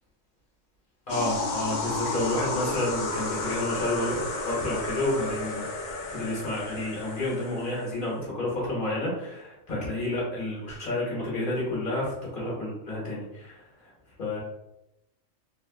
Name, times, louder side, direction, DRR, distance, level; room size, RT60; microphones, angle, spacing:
sound 1, 1.1-8.0, left 3 dB, 85° left, 0.4 m, -32 dB
voice 1, 1.1-5.6 6.1-13.6 14.2-14.4, left 1 dB, 45° left, -5 dB, 0.9 m, -30 dB
2.9 x 2.4 x 2.3 m, 0.88 s
omnidirectional pair, 1.4 m